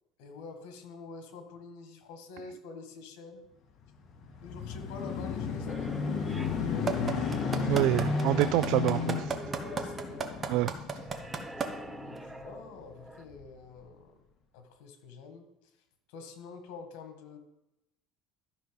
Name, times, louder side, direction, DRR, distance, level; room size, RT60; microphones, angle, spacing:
voice 1, 0.2-3.5 4.4-7.0 7.3-7.9 9.6-10.4 12.0-14.2 14.5-15.5 16.1-17.4, left 4 dB, 85° left, 6 dB, 1.7 m, -47 dB
sound 1, 3.9-12.7 13.3-13.4, left 5 dB, 45° left, 1.8 m, -34 dB
sound 2, 5.7-13.2, right 1 dB, 5° right, 0.6 m, -46 dB
sound 3, 6.9-11.7 12.2-12.3, right 6 dB, 25° right, 1.1 m, -32 dB
voice 2, 7.6-9.4 10.5-11.0, right 16 dB, 70° right, 14 dB, 0.3 m, -27 dB
13.0 x 5.6 x 5.3 m, 0.89 s
cardioid pair, 130°, 0 cm